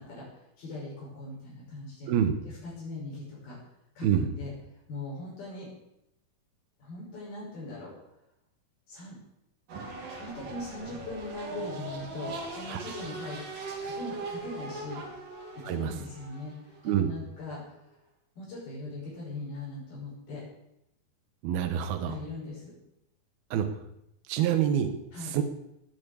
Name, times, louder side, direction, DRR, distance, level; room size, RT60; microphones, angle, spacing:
voice 1, 0.0-2.1 2.4-3.6 4.0-4.5 4.9-5.7 6.8-7.9 8.9-9.2 10.1-13.4 13.8-15.0 15.6-17.6 18.4-20.4 22.1-22.8 25.1-25.3, left 2 dB, 75° left, -6 dB, 8.1 m, -40 dB
sound 1, 9.7-17.6, right 3 dB, 60° right, 4.1 m, -40 dB
voice 2, 21.4-22.2 23.5-23.7 24.3-24.9 25.2-25.4, right 9 dB, 80° right, 7 dB, 3.1 m, -26 dB
20.0 x 7.5 x 8.3 m, 0.82 s
omnidirectional pair, 4.3 m